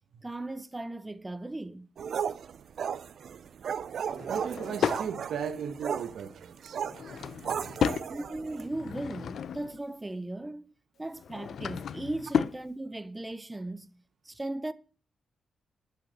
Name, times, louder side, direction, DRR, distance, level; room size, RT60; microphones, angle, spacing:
voice 1, 0.2-1.9 8.1-10.6 11.0-13.9 14.2-14.7, right 2 dB, 15° right, 0.7 m, -37 dB
sound 1, 2.0-8.7, right 7 dB, 70° right, 0.6 m, -35 dB
Drawer open or close / Wood, 4.1-5.1 6.8-8.1 8.6-9.8 11.1-12.6, left 7 dB, 75° left, 0.6 m, -33 dB
voice 2, 4.3-7.1, right 7 dB, 85° right, 1.3 m, -37 dB
10.5 x 5.8 x 7.7 m
cardioid pair, 110°, 0 cm